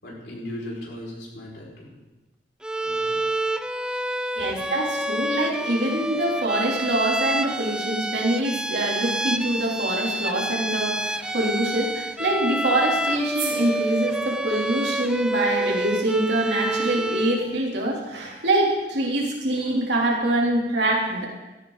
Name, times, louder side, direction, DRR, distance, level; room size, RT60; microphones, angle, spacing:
voice 1, 0.0-2.0 2.8-3.2 4.4-4.6, left 1 dB, 70° left, -4 dB, 5.8 m, -37 dB
Bowed string instrument, 2.6-17.5, right 1 dB, 5° right, 0.4 m, -28 dB
voice 2, 4.4-21.3, right 1 dB, 70° right, -2 dB, 3.5 m, -24 dB
sound 1, 13.3-17.5, right 4 dB, 30° right, 5.0 m, -41 dB
16.5 x 14.5 x 4.1 m, 1.1 s
head